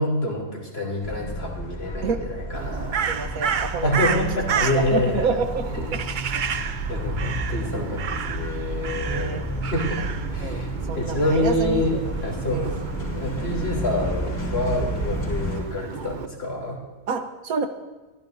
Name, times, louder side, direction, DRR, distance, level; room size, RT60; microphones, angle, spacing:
voice 1, 0.0-3.2 3.8-5.3 5.7-5.9 6.7-10.1 10.3-16.8, left 1 dB, 45° left, -1 dB, 3.4 m, -27 dB
sound 1, 1.0-15.6, equal, 75° left, 3.0 m, -32 dB
Crow, 2.5-16.3, right 7 dB, 55° right, 0.5 m, -31 dB
voice 2, 3.1-4.2 4.5-4.6 4.9-5.6 6.3-6.5 7.2-7.4 9.1-9.4 10.4-12.0 12.5-12.8 17.1-17.7, right 5 dB, 75° right, 7 dB, 1.5 m, -28 dB
24.5 x 14.5 x 2.6 m, 1.2 s
omnidirectional pair, 1.5 m